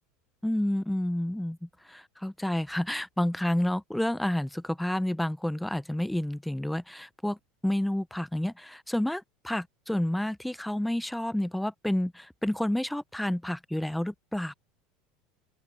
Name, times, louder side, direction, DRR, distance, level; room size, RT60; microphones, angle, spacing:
voice 1, 0.4-7.4 7.6-14.5, left 1 dB, 5° left, 0.9 m, -30 dB
open air
supercardioid pair, 115°, 0 cm